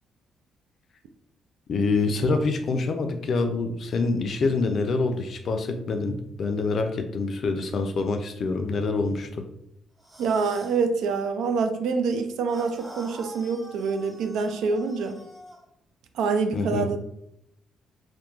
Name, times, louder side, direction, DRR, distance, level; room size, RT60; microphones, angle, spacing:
voice 1, 1.7-9.5 16.5-16.9, left 3 dB, 55° left, 6 dB, 0.4 m, -26 dB
sound 1, 10.0-10.8 12.5-15.6, equal, 15° right, 0.6 m, -45 dB
voice 2, 10.2-15.2 16.1-17.0, right 5 dB, 85° right, 7 dB, 0.3 m, -26 dB
2.9 x 2.1 x 2.3 m, 0.77 s
cardioid pair, 90°, 0 cm